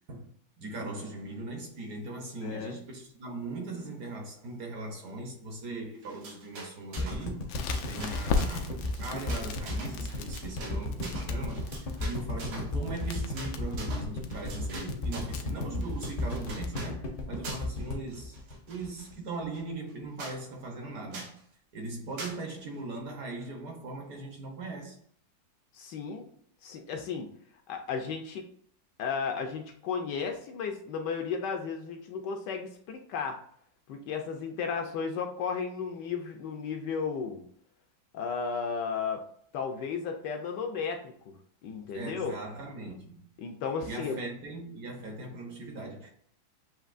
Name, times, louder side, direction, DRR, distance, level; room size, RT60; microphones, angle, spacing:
voice 1, 0.6-7.6 7.9-18.4 18.7-21.4 21.7-25.0 41.9-43.3 43.8-46.1, right 2 dB, 55° right, 1.2 m, -39 dB
voice 2, 2.4-2.8 25.7-26.3 26.6-27.3 27.7-28.5 29.0-33.4 33.9-37.4 38.1-39.2 39.5-41.3 41.6-42.3 43.4-44.2, left 5 dB, 70° left, 1.1 m, -34 dB
sound 1, 6.0-7.3 7.5-15.4 15.8-16.9 17.4-17.8 18.1-19.1 19.5-19.6 19.9-20.0 20.2-20.4 21.1-21.4 22.2-22.4, right 3 dB, 80° right, 2.1 m, -44 dB
sound 2, 7.0-19.1 19.4-19.5 19.7-19.8, left 2 dB, 45° left, 0.7 m, -34 dB
Crackle, 7.5-16.6, left 5 dB, 90° left, 1.4 m, -38 dB
7.5 x 2.9 x 2.4 m
omnidirectional pair, 2.1 m